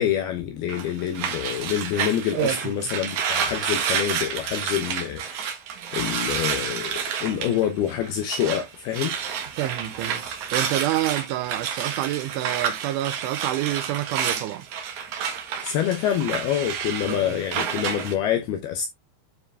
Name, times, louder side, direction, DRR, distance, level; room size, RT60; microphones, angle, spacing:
voice 1, 0.0-5.4 5.9-9.2 15.6-18.9, left 10 dB, 80° left, 2.3 m, -26 dB
sound 1, 0.7-8.6 8.9-18.1, right 7 dB, 70° right, 1.8 m, -30 dB
voice 2, 2.3-2.7 9.6-10.3 10.5-14.7 17.1-17.3, right 14 dB, 90° right, 3.2 m, -28 dB
9.7 x 4.9 x 3.4 m
omnidirectional pair, 5.5 m